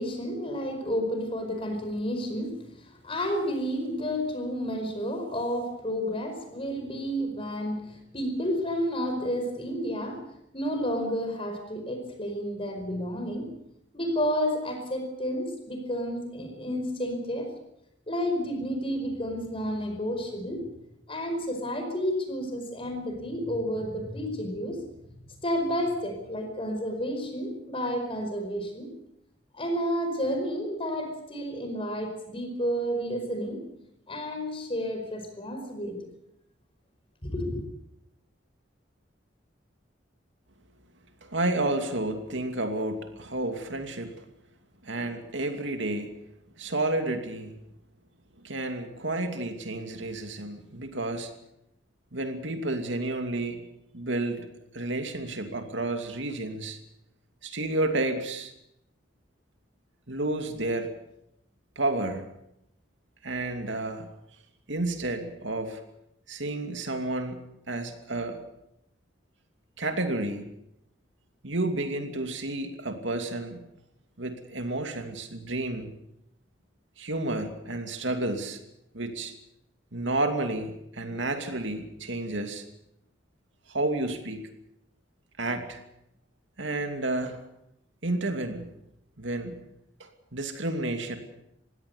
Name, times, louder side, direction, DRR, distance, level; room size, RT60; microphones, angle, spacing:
voice 1, 0.0-2.7 3.0-10.2 10.5-13.5 13.9-17.5 18.1-20.7 21.1-25.1 25.4-28.9 29.5-33.6 34.1-36.0 37.2-37.6, equal, 30° left, 6 dB, 5.0 m, -31 dB
voice 2, 41.2-44.2 44.8-46.3 46.6-47.6 48.4-51.3 52.1-53.6 53.9-54.5 54.7-56.8 57.4-58.5 60.1-60.9 61.8-62.2 63.2-64.1 64.7-65.8 66.3-68.4 69.8-70.5 71.4-73.6 74.2-75.9 77.0-78.6 78.9-79.3 79.9-82.7 83.7-84.5 85.4-85.8 86.6-87.4 88.0-88.7 89.2-89.6 90.0-91.2, right 2 dB, 75° right, 5 dB, 2.7 m, -31 dB
21.5 x 17.0 x 8.0 m, 0.82 s
head